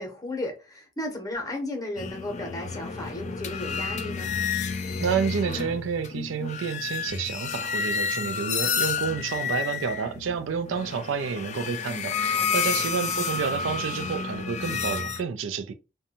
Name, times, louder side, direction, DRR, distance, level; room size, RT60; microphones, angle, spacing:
voice 1, 0.0-4.4 12.3-12.7, left 1 dB, 20° left, 0.7 m, -34 dB
sound 1, 2.0-15.2, left 6 dB, 40° left, 0.3 m, -30 dB
voice 2, 5.0-15.7, right 6 dB, 85° right, 0.4 m, -29 dB
2.5 x 2.2 x 2.8 m
head